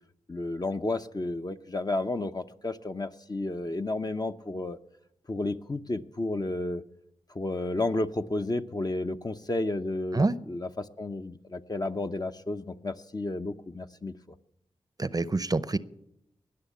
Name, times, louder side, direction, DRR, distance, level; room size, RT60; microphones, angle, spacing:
voice 1, 0.3-4.8 5.3-6.8 7.3-14.1, left 2 dB, 30° left, 8 dB, 0.8 m, -32 dB
voice 2, 15.0-15.8, right 3 dB, 30° right, 17 dB, 0.7 m, -26 dB
19.5 x 6.5 x 8.3 m, 0.83 s
cardioid pair, 40°, 12 cm